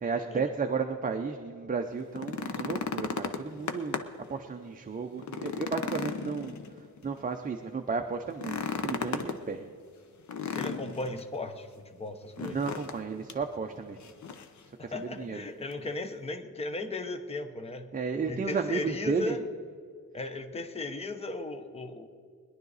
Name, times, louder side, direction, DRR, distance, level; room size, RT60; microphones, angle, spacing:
voice 1, 0.0-4.0 4.3-6.6 7.0-8.6 8.8-9.7 12.4-14.0 14.8-15.4 17.9-19.3, right 5 dB, 25° right, 4 dB, 0.6 m, -33 dB
sound 1, 2.0-4.3 4.7-4.8 5.2-7.1 8.3-9.4 10.3-11.2 12.4-13.0 13.3-13.4 14.0-14.6 15.7-15.8, left 5 dB, 60° left, 0.8 m, -35 dB
voice 2, 10.5-12.6 14.8-19.4 20.1-22.1, left 2 dB, 20° left, 7 dB, 0.8 m, -36 dB
21.0 x 11.0 x 4.0 m, 2.2 s
wide cardioid pair, 180°, 33 cm